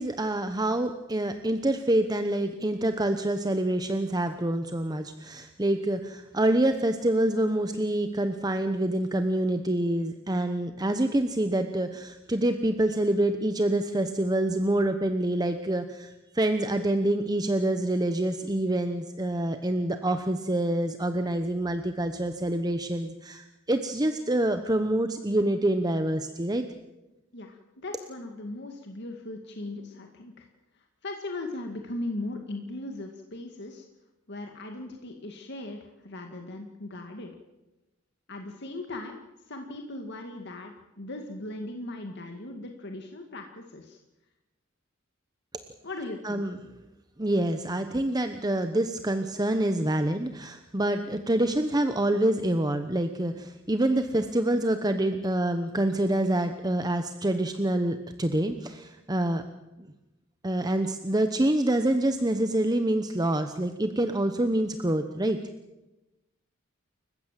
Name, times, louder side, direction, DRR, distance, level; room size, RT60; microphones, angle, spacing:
voice 1, 0.0-26.6 46.2-46.6 47.2-59.4 60.4-65.4, right 1 dB, 20° right, 8 dB, 1.0 m, -26 dB
voice 2, 27.3-30.5 30.7-33.9 34.3-37.3 38.3-44.0 45.8-46.4, left 2 dB, 55° left, 3 dB, 2.1 m, -38 dB
29.5 x 15.5 x 7.6 m, 1.0 s
head